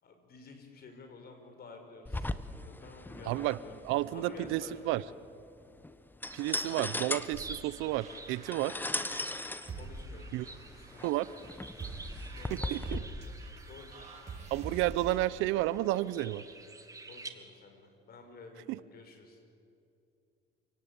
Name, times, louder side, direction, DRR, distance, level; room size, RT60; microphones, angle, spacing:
voice 1, 0.0-3.8 4.1-5.1 9.7-11.1 12.3-13.4 13.6-14.1 14.7-14.8 17.1-19.4, left 3 dB, 50° left, 5 dB, 5.4 m, -51 dB
sound 1, 2.0-13.0, left 2 dB, 10° left, 1.0 m, -39 dB
voice 2, 3.3-3.6 3.8-5.0 6.3-8.8 10.3-10.5 11.0-11.3 12.5-13.0 14.5-16.4 18.7-18.8, right 16 dB, 80° right, 18 dB, 0.7 m, -31 dB
sound 2, 6.3-17.3, right 3 dB, 15° right, 2.1 m, -50 dB
sound 3, 7.3-15.2, right 3 dB, 35° right, 5.9 m, -45 dB
28.0 x 18.0 x 8.9 m, 2.6 s
cardioid pair, 95°, 20 cm